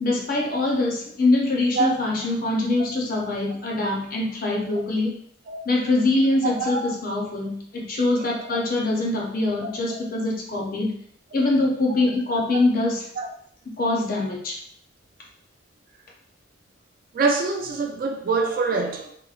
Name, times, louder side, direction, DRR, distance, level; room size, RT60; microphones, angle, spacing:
voice 1, 0.0-5.2 5.7-10.9 11.3-13.1 13.8-14.6, left 2 dB, 45° left, -2 dB, 0.5 m, -23 dB
voice 2, 6.4-6.8 8.2-8.5 13.2-13.3 17.1-19.1, right 4 dB, 45° right, 2 dB, 0.3 m, -25 dB
2.9 x 2.0 x 2.4 m, 0.64 s
head